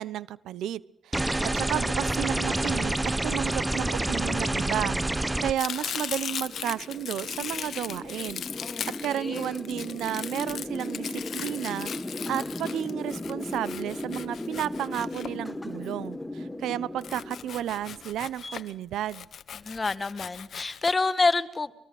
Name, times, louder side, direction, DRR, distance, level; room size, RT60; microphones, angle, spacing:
voice 1, 0.0-8.4 8.9-11.9 12.3-19.3, right 11 dB, 80° right, 19 dB, 1.0 m, -32 dB
sound 1, 1.1-5.5, right 2 dB, 10° right, 1.2 m, -27 dB
sound 2, 3.7-18.6, left 1 dB, 10° left, 1.8 m, -38 dB
Domestic sounds home sounds, 5.6-15.9 17.0-18.7 19.1-20.9, left 8 dB, 60° left, 1.4 m, -38 dB
voice 2, 8.6-9.6 19.5-21.7, left 3 dB, 25° left, 14 dB, 1.8 m, -28 dB
23.5 x 23.0 x 8.0 m, 0.82 s
cardioid pair, 90°, 0 cm